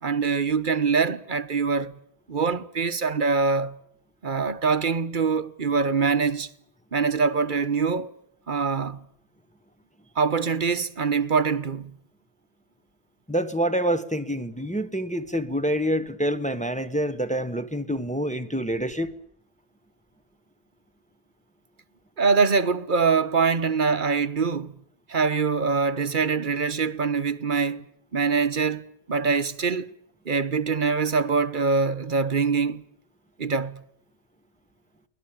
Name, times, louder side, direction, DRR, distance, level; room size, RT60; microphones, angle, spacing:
voice 1, 0.0-2.0 2.3-3.8 4.2-6.5 6.9-8.1 8.5-9.0 10.2-12.0 22.2-24.7 25.1-27.8 28.1-29.9 30.2-32.8 33.4-33.8, right 5 dB, 50° right, 1.2 m, -24 dB
voice 2, 13.3-19.1, equal, 5° left, 1.2 m, -27 dB
24.0 x 18.5 x 8.9 m
omnidirectional pair, 1.1 m